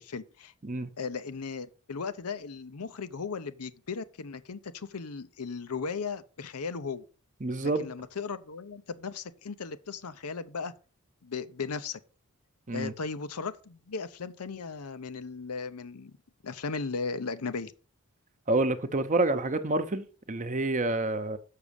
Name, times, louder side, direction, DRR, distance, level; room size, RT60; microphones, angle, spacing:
voice 1, 0.0-0.5 1.0-7.0 7.6-10.7 11.2-12.0 12.7-16.2 16.4-17.7, left 5 dB, 85° left, 0.8 m, -36 dB
voice 2, 7.4-7.9 12.7-12.9 18.5-21.4, right 2 dB, 35° right, 0.8 m, -28 dB
6.7 x 6.2 x 6.9 m
head